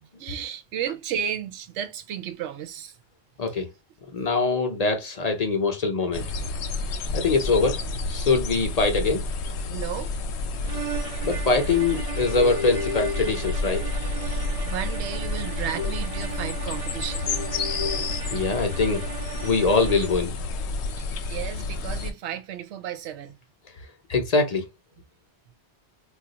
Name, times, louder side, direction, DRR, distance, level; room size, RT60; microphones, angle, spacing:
voice 1, 0.2-3.0 9.7-10.1 14.3-17.3 17.6-17.7 21.0-23.4, right 9 dB, 90° right, 0.9 m, -33 dB
voice 2, 4.1-6.3 7.1-9.2 11.2-13.9 15.8-15.9 17.3-19.1 19.4-20.4 24.1-24.7, left 4 dB, 45° left, 0.6 m, -24 dB
sound 1, 6.1-22.1, left 3 dB, 85° left, 0.9 m, -30 dB
sound 2, 10.6-20.3, right 7 dB, 50° right, 0.4 m, -37 dB
2.3 x 2.3 x 3.8 m
omnidirectional pair, 1.1 m